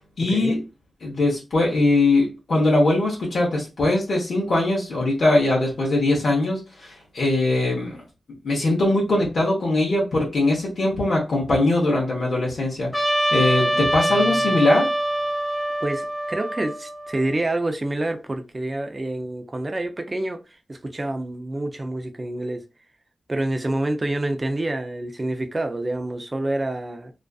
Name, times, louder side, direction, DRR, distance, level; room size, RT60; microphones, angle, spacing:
voice 1, 0.2-0.6 1.0-8.0 8.4-12.9 13.3-14.8, left 2 dB, 70° left, 0.8 m, -21 dB
Trumpet, 12.9-17.4, right 1 dB, 10° left, 0.7 m, -24 dB
voice 2, 13.7-14.5 15.8-22.6 23.3-27.1, right 1 dB, 30° right, 0.4 m, -28 dB
2.4 x 2.4 x 2.3 m
cardioid pair, 75°, 0 cm